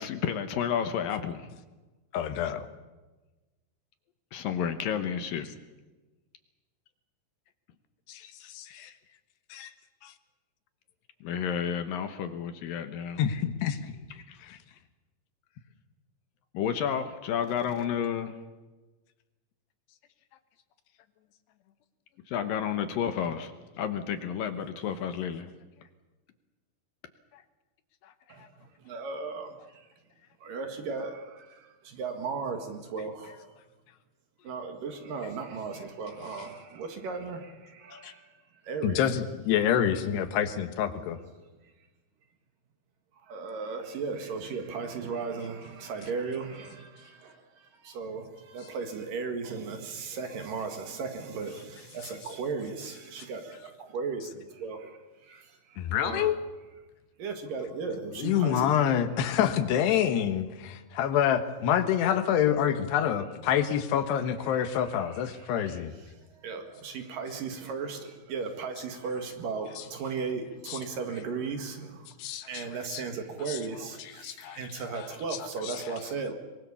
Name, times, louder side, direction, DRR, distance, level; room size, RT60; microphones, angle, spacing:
voice 1, 0.0-1.5 4.3-5.5 11.2-13.2 14.3-14.4 16.5-18.3 22.3-23.5 23.8-25.5, left 8 dB, 70° left, 9 dB, 2.6 m, -31 dB
voice 2, 2.1-2.6 8.1-8.9 9.5-9.7 10.0-10.1 13.2-14.6 37.9-38.1 38.8-41.2 53.2-53.3 55.8-56.4 58.2-65.9 70.7-70.8 72.2-72.7 72.9-73.0 73.5-73.6 74.2-74.6 74.9-75.1 75.6-75.8, left 9 dB, 90° left, 9 dB, 3.5 m, -27 dB
voice 3, 28.3-29.9 30.4-33.6 34.4-39.1 43.2-56.3 57.2-58.7 64.5-72.1 72.5-76.3, right 4 dB, 60° right, 5 dB, 3.3 m, -36 dB
24.0 x 22.5 x 7.1 m, 1.2 s
omnidirectional pair, 4.6 m